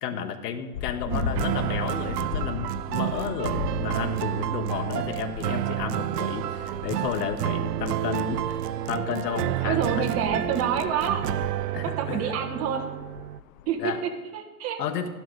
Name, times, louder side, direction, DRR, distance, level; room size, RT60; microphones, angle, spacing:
voice 1, 0.0-8.6 8.9-10.0 10.3-10.4 11.7-12.3 13.8-14.0 14.8-15.1, left 8 dB, 80° left, 8 dB, 1.6 m, -32 dB
sound 1, 0.7-13.9, left 10 dB, 60° left, 0.7 m, -39 dB
sound 2, 1.1-13.4, right 13 dB, 90° right, 0.7 m, -30 dB
sound 3, 6.2-7.4 8.1-12.6 13.0-13.1, right 8 dB, 60° right, 3.2 m, -43 dB
voice 2, 9.6-11.2 11.8-12.8 13.7-14.8, right 7 dB, 30° right, 4 dB, 1.7 m, -28 dB
12.5 x 12.0 x 3.9 m, 1.3 s
supercardioid pair, 135°, 47 cm